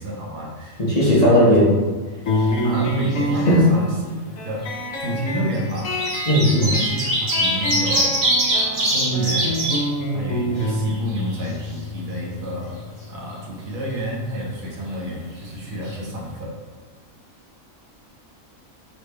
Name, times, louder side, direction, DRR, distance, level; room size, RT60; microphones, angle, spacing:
voice 1, 0.0-1.5 2.6-4.7 5.0-6.0 6.6-9.7 10.1-12.8 13.1-16.5, right 1 dB, 80° right, -3 dB, 1.4 m, -29 dB
voice 2, 0.8-1.7 3.5-3.7 6.3-6.7, left 1 dB, 35° left, -7 dB, 0.8 m, -16 dB
sound 1, 2.3-13.4, equal, 70° left, 1.0 m, -27 dB
sound 2, 2.3-3.1 3.3-3.4 4.5-4.7 5.6-9.8 10.2-10.3 10.6-11.7 15.5-15.6 15.9-16.0, right 1 dB, 40° right, 1.3 m, -23 dB
3.9 x 3.3 x 3.3 m, 1.4 s
omnidirectional pair, 1.4 m